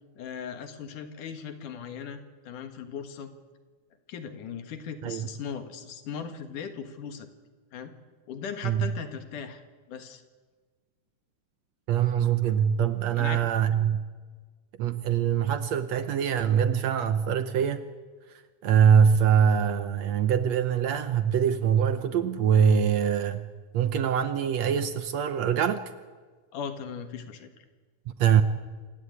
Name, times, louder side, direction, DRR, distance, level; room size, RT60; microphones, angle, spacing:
voice 1, 0.2-3.3 4.1-7.3 7.7-7.9 8.3-10.2 13.2-13.4 26.5-27.6, left 7 dB, 75° left, 8 dB, 3.2 m, -38 dB
voice 2, 11.9-14.0 14.8-17.8 18.6-23.5 23.7-25.8 28.2-28.4, right 8 dB, 70° right, 11 dB, 1.8 m, -23 dB
27.5 x 15.5 x 9.5 m, 1.4 s
omnidirectional pair, 3.7 m